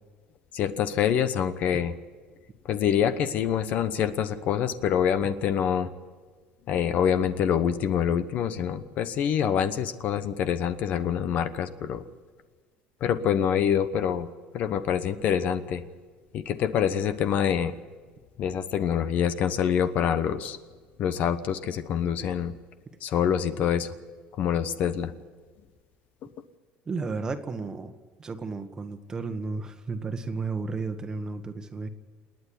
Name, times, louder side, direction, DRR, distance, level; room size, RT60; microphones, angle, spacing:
voice 1, 0.5-1.9 2.6-5.9 6.7-12.0 13.0-14.3 14.5-15.8 16.3-17.7 18.4-20.6 21.0-22.5 23.0-23.9 24.4-25.1, left 8 dB, 50° left, 12 dB, 1.0 m, -26 dB
voice 2, 26.9-27.9 28.2-31.9, right 4 dB, 20° right, 8 dB, 1.4 m, -33 dB
28.0 x 9.4 x 9.9 m, 1.5 s
cardioid pair, 135°, 3 cm